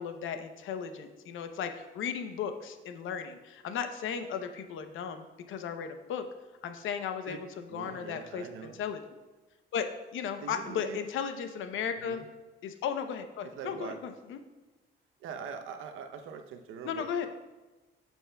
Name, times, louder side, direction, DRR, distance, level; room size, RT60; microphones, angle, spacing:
voice 1, 0.0-6.2 6.6-7.5 7.7-9.0 9.7-9.9 10.1-12.2 12.6-14.4 16.8-17.3, left 7 dB, 80° left, 8 dB, 0.7 m, -35 dB
voice 2, 7.7-8.8 10.4-11.0 12.0-12.3 13.5-14.0 15.2-17.3, right 6 dB, 85° right, 7 dB, 0.7 m, -42 dB
11.0 x 7.1 x 2.3 m, 1.2 s
cardioid pair, 90°, 20 cm